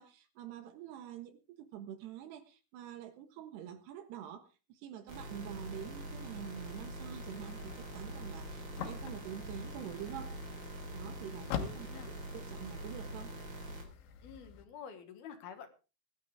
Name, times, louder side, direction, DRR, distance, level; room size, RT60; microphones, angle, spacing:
voice 1, 0.0-10.4 10.9-11.9 12.3-13.3, right 10 dB, 75° right, 9 dB, 3.4 m, -46 dB
sound 1, 5.1-13.8, right 1 dB, 30° right, 3.6 m, -44 dB
sound 2, 6.1-14.6, left 8 dB, 85° left, 3.7 m, -47 dB
voice 2, 11.6-12.1 14.2-15.7, left 7 dB, 65° left, 7 dB, 3.2 m, -49 dB
20.0 x 11.5 x 3.6 m, 0.32 s
omnidirectional pair, 5.0 m